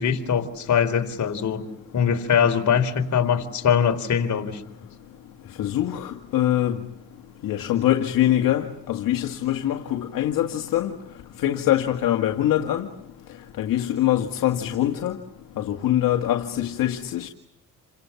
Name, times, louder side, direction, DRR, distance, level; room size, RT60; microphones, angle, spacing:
voice 1, 0.0-1.7 1.9-4.6, left 7 dB, 55° left, 4.2 m, -22 dB
voice 2, 5.6-6.8 7.4-10.9 11.4-12.9 13.6-15.1 15.6-17.3, left 12 dB, 75° left, 2.0 m, -23 dB
29.5 x 26.0 x 7.1 m
cardioid pair, 85°, 34 cm